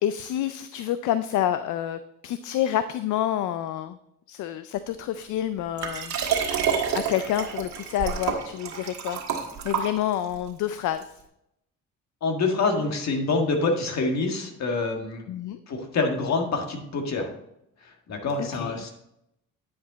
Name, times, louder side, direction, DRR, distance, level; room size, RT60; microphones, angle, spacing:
voice 1, 0.0-4.0 4.3-6.1 6.9-9.2 9.6-11.1 15.3-15.6 18.4-18.8, left 11 dB, 80° left, 12 dB, 0.5 m, -28 dB
Liquid, 5.8-10.4 11.0-11.1, right 7 dB, 65° right, 1.7 m, -28 dB
voice 2, 12.2-15.2 15.7-17.3 17.8-18.9, left 3 dB, 65° left, 3 dB, 1.7 m, -26 dB
9.5 x 5.1 x 4.0 m, 0.80 s
cardioid pair, 90°, 30 cm